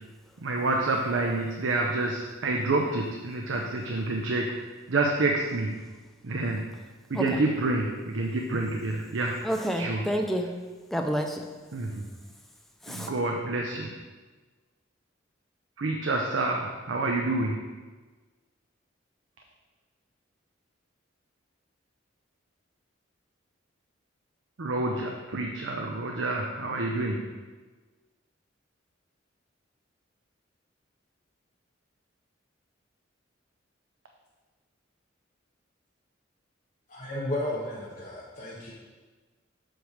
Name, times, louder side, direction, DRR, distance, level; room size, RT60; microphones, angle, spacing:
voice 1, 0.4-4.5 4.9-5.7 6.2-6.6 7.1-9.3 9.8-10.0 11.7-12.1 12.9-13.9 15.8-17.5 24.6-27.2, right 2 dB, 75° right, 1 dB, 0.7 m, -28 dB
voice 2, 9.4-10.5 10.9-11.4 12.8-13.1, equal, ahead, 3 dB, 0.4 m, -29 dB
voice 3, 36.9-38.7, left 1 dB, 40° left, -8 dB, 1.1 m, -33 dB
7.9 x 3.3 x 6.4 m, 1.3 s
head